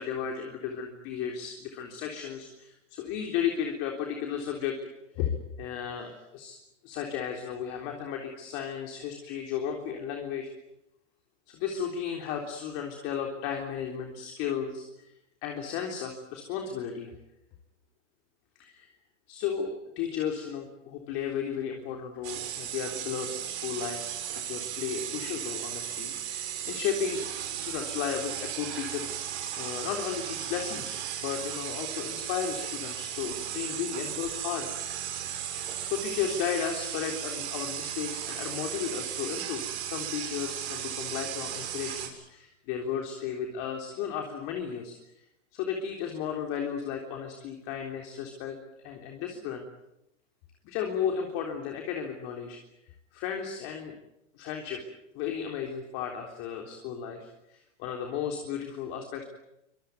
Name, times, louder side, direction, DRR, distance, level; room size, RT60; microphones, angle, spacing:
voice 1, 0.0-4.9 5.1-6.6 6.8-10.5 11.5-15.1 15.4-17.1 18.6-18.9 19.3-27.3 27.5-29.2 29.6-34.7 35.8-45.2 45.5-48.6 48.8-49.7 50.6-52.6 53.1-53.9 54.3-54.8 55.1-59.2, left 8 dB, 35° left, 3 dB, 3.6 m, -34 dB
sound 1, 22.2-42.1, right 10 dB, 60° right, 6.8 m, -36 dB
25.0 x 22.0 x 9.4 m, 0.85 s
hypercardioid pair, 145°, 37 cm